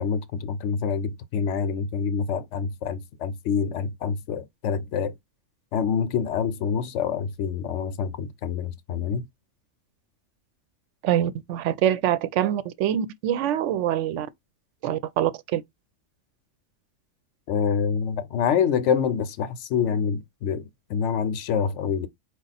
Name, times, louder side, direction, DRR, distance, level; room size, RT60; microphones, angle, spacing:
voice 1, 0.0-5.1 5.7-9.3 17.5-22.1, left 7 dB, 75° left, 0.9 m, -26 dB
voice 2, 11.0-14.3 14.8-15.6, right 11 dB, 75° right, 0.9 m, -25 dB
4.8 x 2.3 x 4.0 m
omnidirectional pair, 1.3 m